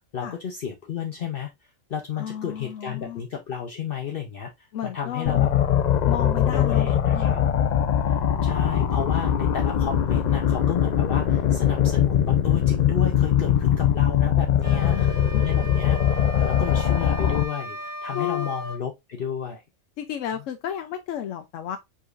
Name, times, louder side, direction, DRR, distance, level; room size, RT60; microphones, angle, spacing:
voice 1, 0.1-1.5 1.9-5.5 6.5-7.4 8.4-15.0 15.4-19.6, left 8 dB, 55° left, 0.8 m, -31 dB
voice 2, 2.2-3.2 4.7-5.5 6.0-7.3 14.7-15.5 16.4-16.5 18.1-18.5 20.0-21.8, left 10 dB, 90° left, 0.9 m, -33 dB
sound 1, 5.3-17.4, left 9 dB, 70° left, 0.4 m, -21 dB
sound 2, 14.6-18.8, equal, 20° right, 0.7 m, -37 dB
5.0 x 4.0 x 2.4 m
omnidirectional pair, 1.3 m